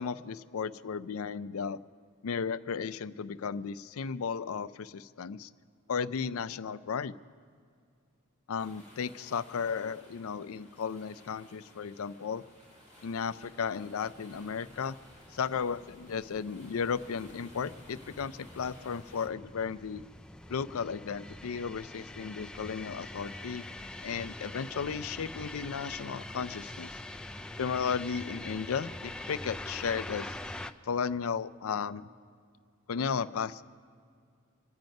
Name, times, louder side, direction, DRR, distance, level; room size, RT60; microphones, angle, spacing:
voice 1, 0.0-1.8 2.2-5.5 5.9-7.2 8.5-12.4 13.0-15.0 15.3-20.0 20.5-23.6 24.0-27.0 27.6-30.4 30.8-32.1 32.9-33.6, left 6 dB, 75° left, 15 dB, 0.4 m, -34 dB
sound 1, 8.6-19.3, left 1 dB, 30° right, 2.5 m, -57 dB
sound 2, 14.0-30.7, left 1 dB, 5° left, 0.3 m, -44 dB
26.0 x 9.1 x 5.3 m, 2.2 s
head